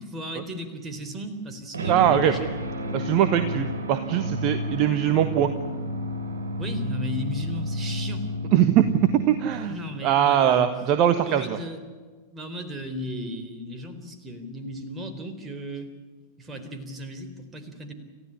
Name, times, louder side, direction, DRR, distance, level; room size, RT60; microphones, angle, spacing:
voice 1, 0.1-2.5 6.6-8.3 9.7-10.7 11.2-11.8 12.3-15.9 16.4-17.9, equal, 20° right, 7 dB, 3.9 m, -35 dB
sound 1, 1.7-10.0, equal, 70° right, 4.1 m, -31 dB
voice 2, 1.9-2.3 2.9-5.5 8.5-9.7 10.0-11.6, right 10 dB, 40° right, 10 dB, 1.4 m, -21 dB
29.0 x 15.5 x 10.0 m, 1.4 s
figure-of-eight pair, 90°, 0 cm